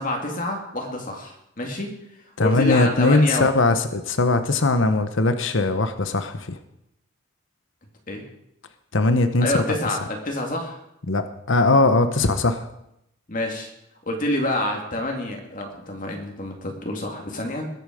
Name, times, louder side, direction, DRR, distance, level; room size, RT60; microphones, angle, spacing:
voice 1, 0.0-3.5 8.1-8.2 9.4-10.8 13.3-13.7 14.0-17.6, left 1 dB, 40° left, 1 dB, 2.1 m, -27 dB
voice 2, 2.4-6.6 8.9-9.6 11.1-12.7, left 2 dB, 65° left, 9 dB, 1.0 m, -20 dB
21.5 x 8.8 x 5.1 m, 0.80 s
head